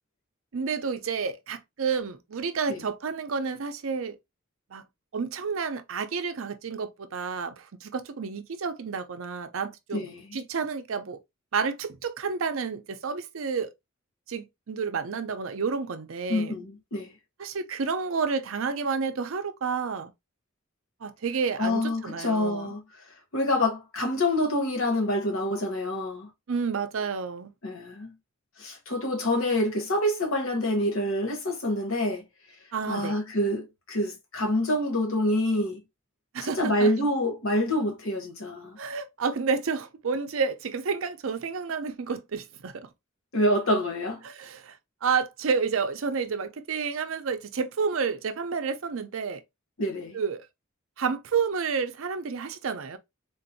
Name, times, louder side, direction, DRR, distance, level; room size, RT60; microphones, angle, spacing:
voice 1, 0.5-4.2 4.7-4.8 5.1-11.2 11.5-13.7 14.3-16.6 17.4-20.1 21.0-22.7 26.5-27.5 32.7-33.2 36.3-36.9 38.8-42.9 44.2-44.8 45.0-49.4 50.1-50.5 51.0-53.0, right 5 dB, 75° right, 0.5 m, -30 dB
voice 2, 9.9-10.4 16.3-17.1 21.6-22.8 23.3-26.3 27.6-28.1 28.6-32.2 32.9-35.8 36.4-38.8 43.3-44.2 49.8-50.2, left 1 dB, 80° left, 1.1 m, -27 dB
3.8 x 2.6 x 2.6 m
head